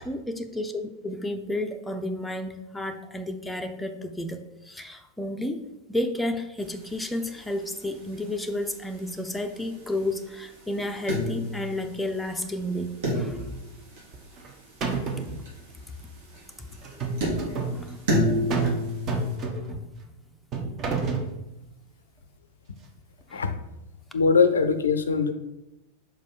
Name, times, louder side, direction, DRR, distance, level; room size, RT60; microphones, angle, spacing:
voice 1, 0.1-4.4 4.7-5.6 5.9-13.4 17.7-18.0 23.3-23.4, left 1 dB, 5° left, 4 dB, 0.7 m, -31 dB
sound 1, 6.6-19.4, equal, 55° right, 2.8 m, -33 dB
sound 2, 14.1-14.5 14.8-15.3 16.8-17.8 18.5-18.8 19.1-19.8 20.5-21.3, right 4 dB, 30° right, 1.3 m, -28 dB
voice 2, 24.1-25.3, left 5 dB, 70° left, 10 dB, 0.5 m, -21 dB
5.2 x 4.6 x 6.1 m, 0.93 s
figure-of-eight pair, 90°, 0 cm